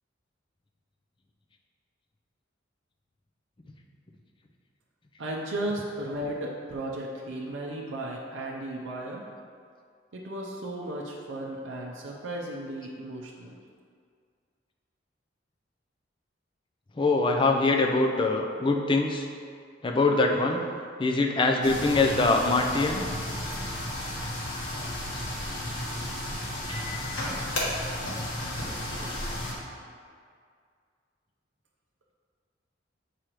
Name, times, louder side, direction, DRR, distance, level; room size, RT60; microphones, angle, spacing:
voice 1, 5.2-9.2 10.1-13.6, right 1 dB, 70° right, -3 dB, 0.6 m, -35 dB
voice 2, 17.0-19.3 19.8-20.7 21.0-23.1, left 3 dB, 25° left, 2 dB, 0.4 m, -23 dB
sound 1, 21.6-29.5, left 1 dB, 85° left, 1.2 m, -33 dB
6.5 x 4.8 x 3.0 m, 2.2 s
head